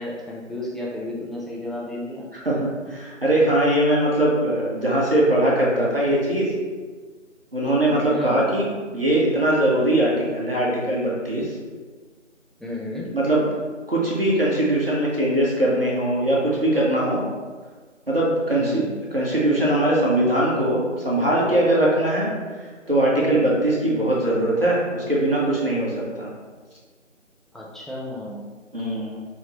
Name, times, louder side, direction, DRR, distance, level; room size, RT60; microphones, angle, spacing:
voice 1, 0.0-2.3 7.8-8.5 12.6-13.1 18.6-19.0 27.5-28.5, left 1 dB, ahead, -5 dB, 0.3 m, -33 dB
voice 2, 2.9-6.5 7.5-8.7 8.9-11.5 13.1-13.5 13.9-17.2 18.1-18.8 19.1-22.3 22.9-25.9 26.2-26.3 28.7-29.2, right 1 dB, 50° right, -6 dB, 0.6 m, -21 dB
3.0 x 2.8 x 2.5 m, 1.5 s
figure-of-eight pair, 165°, 39 cm